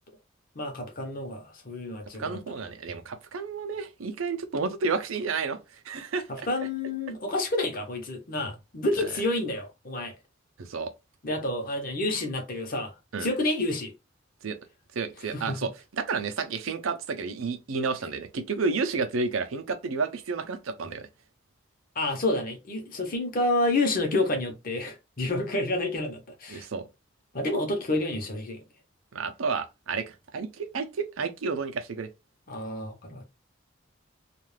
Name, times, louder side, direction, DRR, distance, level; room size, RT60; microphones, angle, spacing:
voice 1, 0.5-2.4 6.3-10.1 11.2-13.9 15.2-15.6 21.9-26.7 27.3-28.6 32.5-33.2, left 2 dB, 45° left, 0.8 m, -29 dB
voice 2, 2.2-5.6 5.8-6.3 10.6-10.9 13.1-13.3 14.4-14.6 14.9-15.7 16.0-21.1 26.5-26.9 29.1-32.1, right 4 dB, 85° right, 0.5 m, -31 dB
2.4 x 2.3 x 3.2 m
head